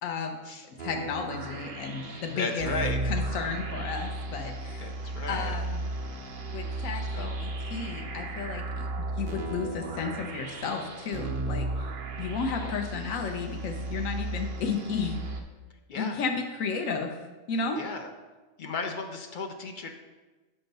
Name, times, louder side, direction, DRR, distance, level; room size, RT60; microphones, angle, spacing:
voice 1, 0.0-0.4 0.8-2.7 3.0-4.9 5.3-5.9 6.5-8.9 9.2-11.7 12.2-15.1 15.9-17.1 17.5-17.8, left 5 dB, 85° left, 3 dB, 1.1 m, -33 dB
sound 1, 0.8-15.4, right 2 dB, 50° right, 0.7 m, -35 dB
voice 2, 2.0-3.0 4.8-5.5 7.1-7.3 12.6-12.8 15.9-16.2 17.7-18.1 18.6-19.9, left 4 dB, 50° left, 4 dB, 0.6 m, -35 dB
6.9 x 3.8 x 5.2 m, 1.2 s
omnidirectional pair, 1.4 m